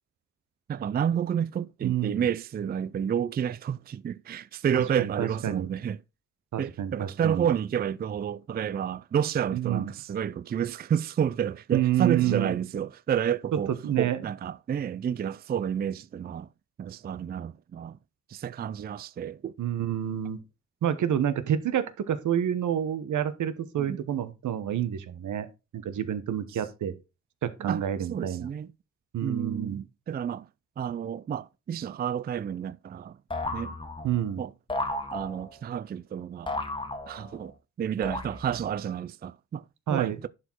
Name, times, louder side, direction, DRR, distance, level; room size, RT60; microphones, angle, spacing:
voice 1, 0.7-6.0 6.6-13.7 14.0-16.5 16.8-18.0 18.3-19.5 23.8-24.0 27.6-27.8 28.1-28.7 29.2-30.5 30.8-33.2 33.5-33.8 34.4-34.5 35.1-36.6 37.1-40.3, right 8 dB, 35° right, 0.4 m, -30 dB
voice 2, 1.8-2.3 4.7-5.7 6.5-7.5 9.5-9.9 11.7-12.5 13.8-14.2 19.6-20.4 20.8-25.5 25.7-26.9 27.4-28.5 29.1-29.8 34.0-34.5 39.9-40.2, right 10 dB, 85° right, 1.1 m, -28 dB
sound 1, 33.3-34.3 34.7-35.6 36.5-37.5 38.0-38.7, left 2 dB, 15° left, 1.5 m, -34 dB
11.0 x 4.4 x 4.5 m
wide cardioid pair, 120°, 30 cm